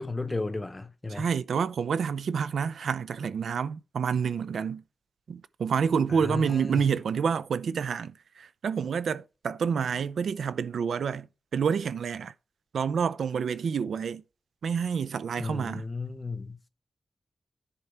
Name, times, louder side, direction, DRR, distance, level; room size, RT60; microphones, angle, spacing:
voice 1, 0.0-1.3 6.1-6.9 15.4-16.6, left 3 dB, 15° left, 0.8 m, -34 dB
voice 2, 1.1-4.8 5.3-11.3 11.5-12.3 12.7-14.2 14.6-15.8, right 6 dB, 85° right, 0.6 m, -28 dB
10.0 x 4.4 x 5.1 m
wide cardioid pair, 180°, 0 cm